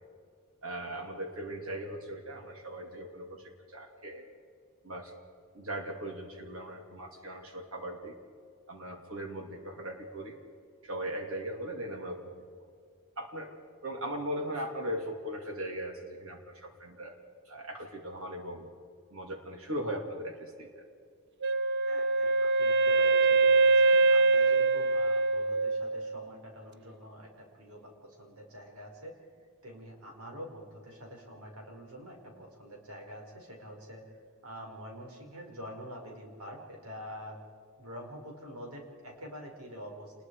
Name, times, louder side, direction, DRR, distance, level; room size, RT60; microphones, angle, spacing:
voice 1, 0.6-4.2 4.8-5.1 5.5-8.2 8.7-10.4 10.8-12.4 13.2-13.5 13.8-17.2 17.4-18.7 19.1-20.8, right 1 dB, 70° right, 3 dB, 3.0 m, -39 dB
Wind instrument woodwind instrument, 21.4-26.3, right 3 dB, 50° right, 0.7 m, -24 dB
voice 2, 21.8-29.1 29.6-34.2 34.4-37.4 37.8-40.1, equal, 85° right, 1 dB, 5.3 m, -46 dB
27.5 x 21.0 x 5.0 m, 2.3 s
head